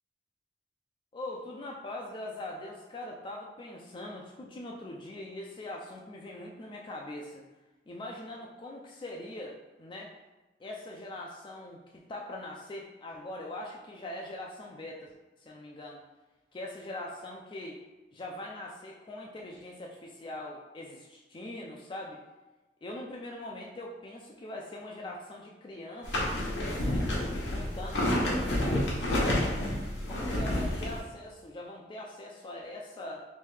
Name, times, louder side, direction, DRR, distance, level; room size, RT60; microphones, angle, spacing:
voice 1, 1.1-7.4 7.9-10.1 10.6-15.1 15.4-16.0 16.5-17.8 18.1-22.2 22.8-26.4 26.8-27.1 27.5-29.5 30.1-33.3, left 1 dB, 30° left, -1 dB, 0.3 m, -42 dB
sound 1, 26.0-31.0, left 1 dB, 80° left, 0.8 m, -29 dB
3.2 x 2.6 x 3.3 m, 1.1 s
head